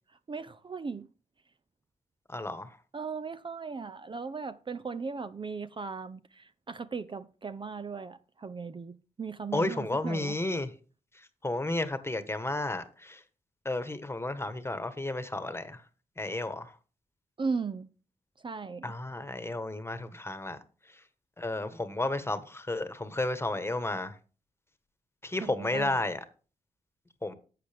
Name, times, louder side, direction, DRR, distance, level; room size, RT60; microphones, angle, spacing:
voice 1, 0.1-1.1 2.9-10.4 17.4-17.9 18.4-18.9 25.4-26.0, right 5 dB, 35° right, 0.6 m, -37 dB
voice 2, 2.3-2.7 9.5-10.7 11.4-13.2 13.6-15.8 16.2-16.7 18.8-20.6 21.4-24.2 25.2-26.2 27.2-27.3, left 2 dB, 15° left, 1.3 m, -32 dB
11.5 x 7.6 x 3.5 m
cardioid pair, 70°, 14 cm